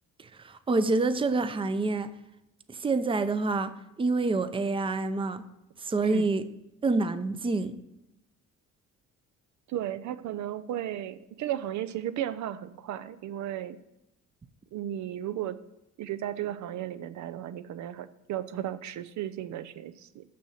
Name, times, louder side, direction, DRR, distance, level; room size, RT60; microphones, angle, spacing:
voice 1, 0.2-2.1 2.7-5.4 5.8-6.4 6.8-7.8, right 3 dB, 15° right, 0.5 m, -27 dB
voice 2, 6.0-6.4 9.7-13.8 14.7-15.6 16.0-20.2, right 11 dB, 70° right, 0.5 m, -35 dB
6.8 x 6.3 x 6.4 m
cardioid pair, 90°, 30 cm